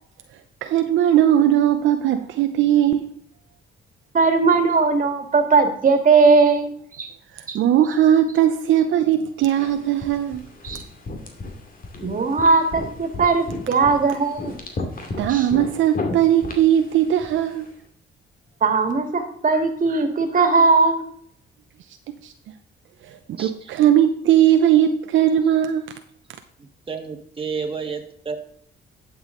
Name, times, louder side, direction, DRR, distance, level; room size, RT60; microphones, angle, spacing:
voice 1, 0.6-3.1 7.5-10.4 15.2-17.7 22.2-22.3 23.4-25.9, right 10 dB, 75° right, 0.7 m, -18 dB
voice 2, 4.1-7.1 7.5-7.6 10.6-10.8 12.0-14.6 15.3-15.5 18.6-21.0, right 4 dB, 40° right, 2.0 m, -19 dB
sound 1, 9.5-17.7, left 2 dB, 45° left, 2.4 m, -34 dB
voice 3, 23.4-23.7 26.9-28.4, right 5 dB, 25° right, 1.6 m, -30 dB
11.5 x 7.3 x 3.8 m
cardioid pair, 90°, 20 cm